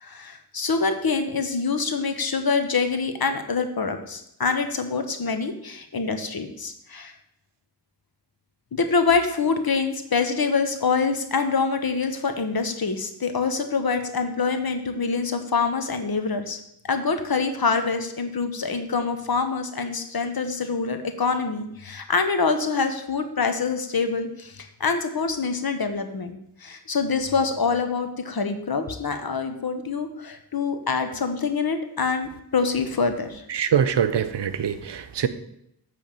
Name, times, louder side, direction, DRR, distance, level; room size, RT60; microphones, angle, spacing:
voice 1, 0.0-7.1 8.7-16.6 16.9-33.4, left 4 dB, 60° left, 7 dB, 0.9 m, -25 dB
voice 2, 33.5-35.3, right 8 dB, 80° right, 12 dB, 0.7 m, -23 dB
8.7 x 3.4 x 6.7 m, 0.76 s
wide cardioid pair, 65°, 41 cm